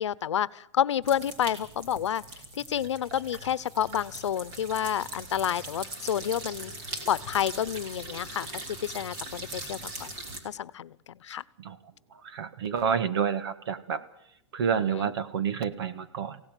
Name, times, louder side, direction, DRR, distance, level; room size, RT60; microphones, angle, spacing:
voice 1, 0.0-2.2 2.6-6.7 7.1-8.5 8.8-10.1 10.4-10.9 11.2-11.4 14.7-15.1, left 10 dB, 85° left, 19 dB, 1.0 m, -29 dB
sound 1, 1.0-10.4, right 2 dB, 30° right, 3.7 m, -41 dB
voice 2, 12.2-14.0 14.5-16.4, right 7 dB, 60° right, 12 dB, 1.9 m, -29 dB
24.5 x 17.0 x 9.2 m, 0.76 s
hypercardioid pair, 160°, 15 cm